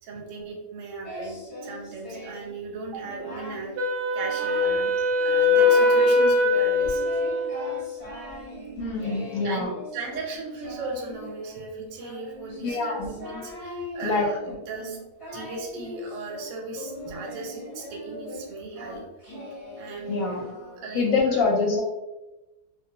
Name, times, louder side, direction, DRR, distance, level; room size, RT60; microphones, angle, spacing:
voice 1, 0.0-3.7 4.1-4.9 5.2-7.0 9.4-14.4 14.7-15.0 15.3-19.0 19.7-20.4 20.8-21.5, right 3 dB, 65° right, -1 dB, 0.9 m, -37 dB
Singing, 1.0-2.5 2.9-3.7 4.1-4.9 5.2-6.1 6.5-21.0, left 1 dB, 30° left, 0.7 m, -40 dB
Wind instrument woodwind instrument, 3.8-8.1, left 2 dB, 85° right, 1.1 m, -22 dB
voice 2, 8.8-9.7 12.6-13.1 14.0-14.3 17.1-17.2 20.1-20.4 20.9-21.8, left 4 dB, 70° left, 1 dB, 0.9 m, -25 dB
2.4 x 2.2 x 2.7 m, 1.0 s
omnidirectional pair, 1.6 m